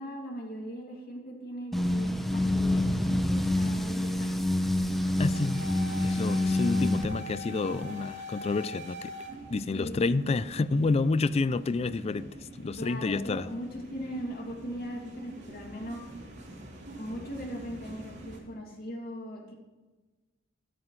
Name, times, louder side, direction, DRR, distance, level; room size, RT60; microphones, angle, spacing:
voice 1, 0.0-4.3 9.7-10.0 12.7-16.0 17.0-19.5, equal, 50° left, 0 dB, 2.7 m, -39 dB
sound 1, 1.7-7.1, left 1 dB, ahead, 0.9 m, -27 dB
sound 2, 4.7-18.4, equal, 65° right, 3.3 m, -44 dB
voice 2, 5.2-5.7 6.0-9.1 9.5-12.3 12.6-13.5, left 3 dB, 35° left, 16 dB, 0.4 m, -29 dB
15.5 x 12.5 x 3.2 m, 1.2 s
head